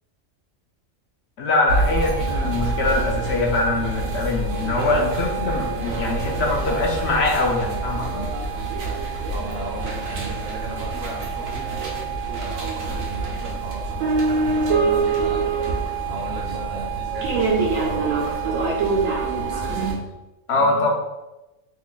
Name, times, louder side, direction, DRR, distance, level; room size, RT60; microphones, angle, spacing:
voice 1, 1.4-8.3 20.5-20.9, left 2 dB, 65° left, 0 dB, 0.8 m, -23 dB
sound 1, 1.7-19.9, right 4 dB, 85° right, 1.1 m, -25 dB
voice 2, 9.3-11.7 12.3-15.5 16.1-18.3 19.3-20.1 20.5-20.9, right 2 dB, 60° right, 0 dB, 0.8 m, -36 dB
2.9 x 2.3 x 3.8 m, 1.0 s
omnidirectional pair, 1.3 m